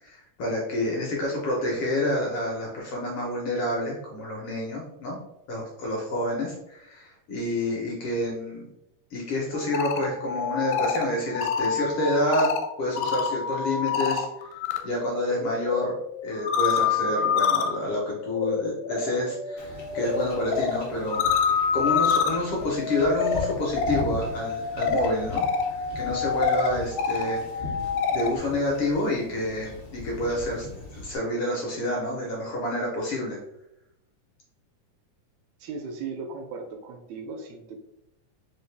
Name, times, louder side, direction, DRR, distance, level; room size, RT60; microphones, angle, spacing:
voice 1, 0.0-5.2 5.5-8.7 9.1-12.5 12.8-14.5 14.8-21.2 21.7-25.5 25.9-27.8 28.1-30.7 30.9-33.4, left 1 dB, 70° left, -2 dB, 1.4 m, -28 dB
sound 1, 9.5-14.8 15.1-28.4, left 6 dB, 85° left, 2.0 m, -27 dB
Wind / Ocean / Boat Water vehicle, 19.6-31.2, left 3 dB, 50° left, 0.8 m, -40 dB
voice 2, 35.6-37.8, right 4 dB, 80° right, 4 dB, 1.7 m, -37 dB
4.6 x 2.6 x 3.2 m, 0.83 s
omnidirectional pair, 3.4 m